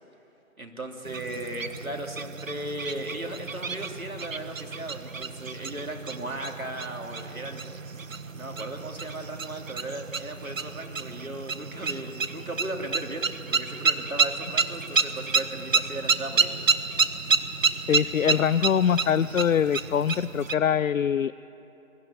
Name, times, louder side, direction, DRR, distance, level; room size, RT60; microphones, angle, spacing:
voice 1, 0.6-7.7 8.3-16.5, right 1 dB, 90° right, 2 dB, 3.0 m, -36 dB
sound 1, 1.0-20.5, right 5 dB, 70° right, 1.2 m, -30 dB
voice 2, 17.9-21.3, left 8 dB, 70° left, 16 dB, 0.5 m, -23 dB
22.5 x 13.5 x 9.8 m, 3.0 s
figure-of-eight pair, 155°, 41 cm